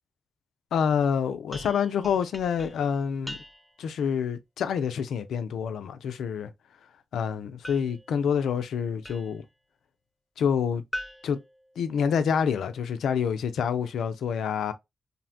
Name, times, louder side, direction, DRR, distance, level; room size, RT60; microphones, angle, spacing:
voice 1, 0.7-3.4 3.8-6.5 7.1-9.4 10.4-10.8 11.2-11.4 11.8-14.7, left 7 dB, 85° left, 0.3 m, -27 dB
sound 1, 1.5-3.9 7.6-9.5 10.9-12.4, equal, 5° left, 0.5 m, -43 dB
2.6 x 2.1 x 2.4 m
supercardioid pair, 45°, 0 cm